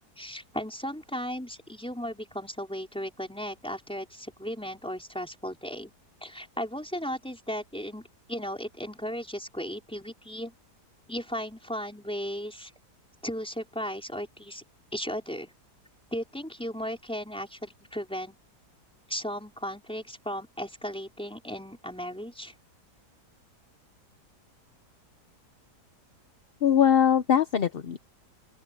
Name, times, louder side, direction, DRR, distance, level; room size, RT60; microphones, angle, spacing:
voice 1, 0.2-5.9 6.2-10.5 11.1-12.7 13.2-14.6 14.9-15.5 16.1-18.3 19.1-22.5, equal, 5° left, 4.7 m, -36 dB
voice 2, 26.6-28.1, left 8 dB, 50° left, 0.7 m, -22 dB
open air
omnidirectional pair, 1.7 m